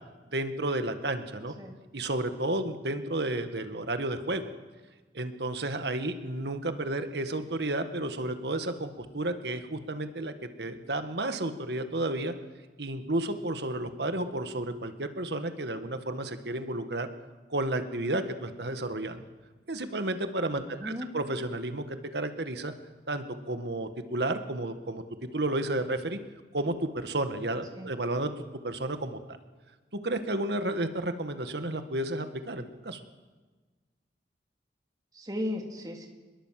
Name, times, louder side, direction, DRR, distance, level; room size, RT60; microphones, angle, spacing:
voice 1, 0.3-1.5 1.9-4.5 5.1-12.3 12.8-17.1 17.5-19.2 19.7-22.7 23.1-25.0 25.3-26.2 26.5-28.3 28.6-29.2 30.0-33.0, right 1 dB, 70° right, 8 dB, 1.7 m, -32 dB
voice 2, 20.6-21.1 27.8-27.9 35.1-36.1, left 1 dB, 20° right, 2 dB, 2.7 m, -36 dB
25.5 x 21.5 x 7.6 m, 1.3 s
head